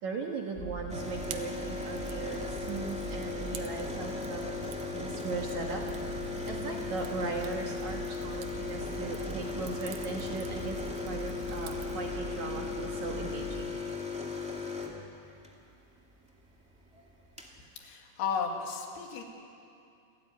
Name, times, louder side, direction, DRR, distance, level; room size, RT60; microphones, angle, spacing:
voice 1, 0.0-5.8 6.2-13.7 16.9-17.0, right 3 dB, 55° right, 1 dB, 2.3 m, -38 dB
sound 1, 0.5-13.6, right 3 dB, 30° right, 2.1 m, -43 dB
sound 2, 0.9-15.5 16.8-16.9 17.1-17.5, left 4 dB, 10° right, 0.3 m, -37 dB
Fire, 1.0-12.1, right 8 dB, 70° right, 2.1 m, -48 dB
voice 2, 17.8-19.2, left 6 dB, 75° left, 2 dB, 4.0 m, -34 dB
27.5 x 13.5 x 9.5 m, 2.5 s
omnidirectional pair, 4.8 m